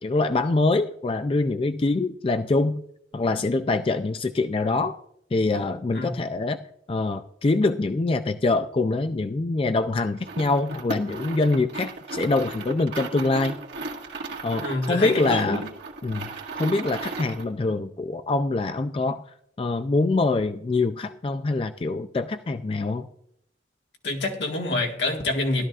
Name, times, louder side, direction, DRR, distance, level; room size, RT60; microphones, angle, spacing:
voice 1, 0.0-2.8 3.1-5.0 5.3-6.6 6.9-13.6 14.4-15.6 16.0-16.3 16.5-19.2 19.6-23.1, left 3 dB, 30° left, 0.4 m, -24 dB
sound 1, 10.2-17.5, right 3 dB, 75° right, 1.8 m, -35 dB
voice 2, 14.6-15.6 24.0-25.7, left 2 dB, 85° left, 1.8 m, -26 dB
16.0 x 12.5 x 2.4 m
head